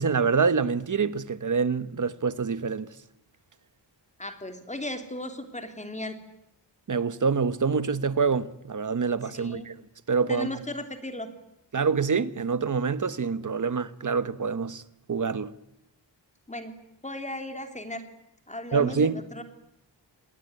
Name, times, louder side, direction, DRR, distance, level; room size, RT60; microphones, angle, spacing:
voice 1, 0.0-2.9 6.9-9.7 10.1-10.6 11.7-14.8 15.1-15.5 18.7-19.2, right 5 dB, 45° right, 1.2 m, -26 dB
voice 2, 4.2-6.2 9.3-9.7 10.3-11.3 16.5-16.7 17.0-18.0 18.5-19.4, left 1 dB, 15° left, 3.0 m, -36 dB
27.5 x 21.5 x 9.7 m
wide cardioid pair, 165°, 43 cm